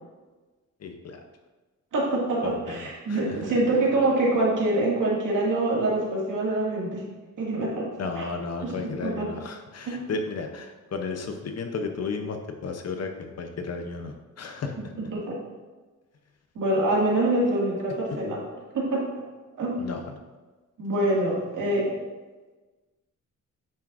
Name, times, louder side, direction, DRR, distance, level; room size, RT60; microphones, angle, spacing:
voice 1, 0.8-1.2 2.4-3.6 8.0-15.1 19.8-20.2, left 4 dB, 55° left, 5 dB, 0.7 m, -34 dB
voice 2, 1.9-7.0 7.4-7.9 9.0-9.3 9.9-10.0 15.1-15.4 16.6-18.4 18.7-19.0 19.6-19.8 20.8-21.9, right 2 dB, 85° right, -4 dB, 2.1 m, -25 dB
8.9 x 6.0 x 2.5 m, 1.3 s
wide cardioid pair, 145°, 31 cm